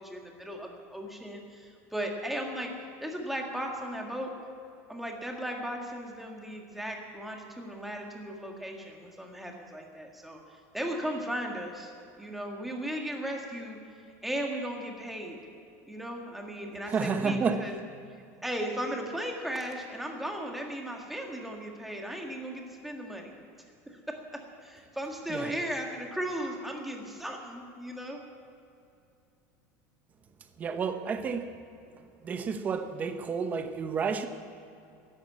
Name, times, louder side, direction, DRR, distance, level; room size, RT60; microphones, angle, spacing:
voice 1, 0.0-2.7 3.0-4.3 4.9-11.9 12.2-13.8 14.2-15.4 15.9-17.7 18.4-23.3 23.9-28.2, equal, ahead, 1.8 m, -36 dB
voice 2, 16.9-17.7 25.3-25.5 30.6-31.5 32.2-34.3, right 5 dB, 20° right, 0.9 m, -30 dB
14.0 x 11.5 x 8.5 m
cardioid pair, 165°, 8 cm